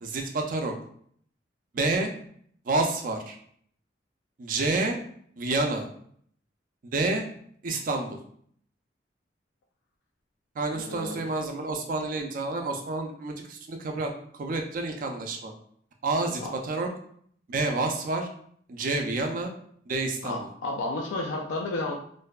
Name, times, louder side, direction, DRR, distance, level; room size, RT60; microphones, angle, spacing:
voice 1, 0.0-0.7 1.7-2.1 2.7-3.4 4.4-5.0 5.4-5.9 6.8-7.2 7.6-8.2 10.6-14.1 14.4-15.5 16.0-16.9 17.5-18.3 18.7-19.5 19.9-20.5, right 2 dB, 45° right, 3 dB, 0.4 m, -29 dB
voice 2, 10.7-11.2 16.4-16.6 20.2-21.9, left 2 dB, 85° left, 0 dB, 0.3 m, -32 dB
2.5 x 2.1 x 2.3 m, 0.62 s
head